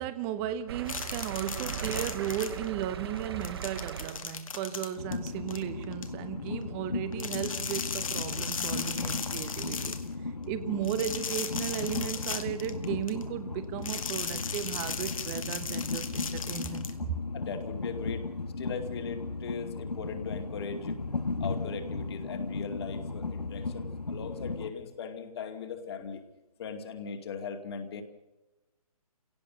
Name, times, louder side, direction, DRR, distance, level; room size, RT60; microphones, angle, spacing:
voice 1, 0.0-10.0 10.5-17.2, right 10 dB, 20° right, 1.1 m, -35 dB
sound 1, 0.7-4.6 5.4-5.5 5.9-6.0, right 8 dB, 40° right, 0.8 m, -39 dB
sound 2, 0.9-2.8 3.2-6.1 7.1-10.1 10.8-13.2 13.8-16.9, left 6 dB, 60° left, 2.0 m, -37 dB
Train, 5.0-24.7, left 3 dB, 80° left, 1.9 m, -36 dB
voice 2, 17.3-18.2 18.6-21.0 21.4-26.2 26.6-28.0, left 6 dB, 40° left, 2.5 m, -39 dB
29.0 x 17.5 x 6.4 m
figure-of-eight pair, 140°, 19 cm